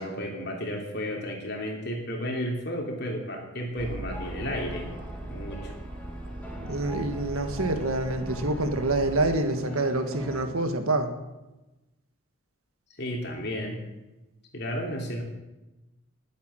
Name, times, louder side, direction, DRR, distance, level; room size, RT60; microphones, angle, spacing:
voice 1, 0.0-4.9 5.3-5.7 13.0-13.8 14.5-15.2, equal, 50° left, 1 dB, 2.9 m, -32 dB
Aircraft, 3.8-9.4, right 1 dB, 20° right, 0.6 m, -39 dB
sound 1, 4.1-10.4, equal, 5° left, 1.8 m, -43 dB
voice 2, 6.6-11.1, right 2 dB, 90° right, 7 dB, 1.7 m, -27 dB
20.0 x 8.4 x 6.4 m, 1.0 s
head